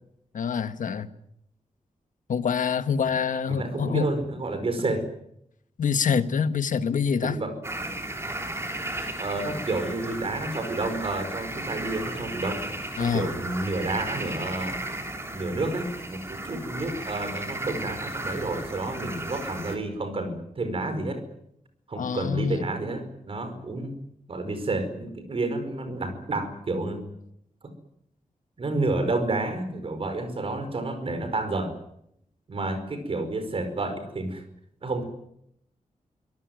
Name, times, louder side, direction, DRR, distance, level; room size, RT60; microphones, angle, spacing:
voice 1, 0.3-1.1 2.3-4.1 5.8-7.4 13.0-13.3 21.9-22.6, left 6 dB, 80° left, 11 dB, 1.5 m, -26 dB
voice 2, 3.5-5.1 7.2-7.5 9.2-12.7 13.0-14.8 15.3-21.2 21.9-24.0 24.3-27.1 27.6-27.7 28.6-31.8 32.5-34.4 34.8-35.0, right 2 dB, 45° right, 9 dB, 5.0 m, -30 dB
sound 1, 7.6-19.8, right 1 dB, 20° right, 3.4 m, -35 dB
25.0 x 18.0 x 9.3 m, 0.75 s
wide cardioid pair, 175°, 13 cm